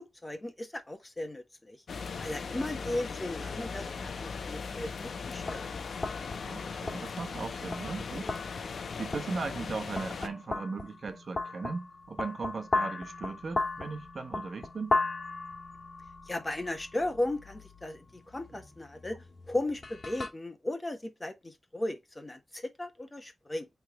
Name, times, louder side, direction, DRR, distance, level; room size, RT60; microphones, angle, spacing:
voice 1, 0.0-1.8 2.2-5.6 16.3-23.7, left 1 dB, 25° left, 1.4 m, -36 dB
sound 1, 1.9-10.3, left 5 dB, 80° left, 0.8 m, -38 dB
sound 2, 5.4-20.3, left 3 dB, 45° left, 1.8 m, -37 dB
voice 2, 6.5-8.3 9.0-15.0 18.5-18.6, right 4 dB, 60° right, 1.2 m, -38 dB
8.7 x 3.7 x 3.2 m
wide cardioid pair, 85°, 0 cm